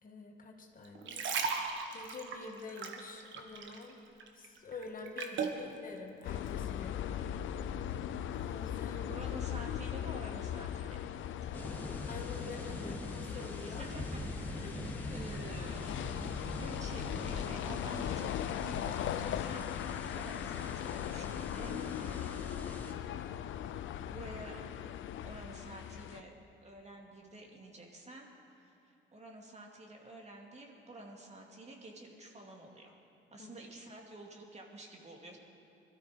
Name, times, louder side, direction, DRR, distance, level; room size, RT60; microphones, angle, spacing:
voice 1, 0.0-1.4 1.9-4.0 4.3-7.0 8.3-9.1 12.1-13.9 14.6-14.8 33.4-33.5, left 3 dB, 45° left, 2 dB, 1.9 m, -47 dB
sound 1, 0.8-3.9 4.2-5.6 6.2-6.4, right 5 dB, 70° right, 1.5 m, -37 dB
sound 2, 6.2-26.2, left 10 dB, 75° left, 0.6 m, -39 dB
voice 2, 9.0-11.1 13.3-14.2 15.1-16.0 16.6-19.7 20.1-22.9 24.1-24.6 25.2-26.3 26.6-32.9 33.3-35.4, right 2 dB, 35° right, 0 dB, 2.5 m, -50 dB
sound 3, 11.5-22.9, equal, 10° left, 2.5 m, -44 dB
21.0 x 13.0 x 5.1 m, 2.8 s
cardioid pair, 90°, 20 cm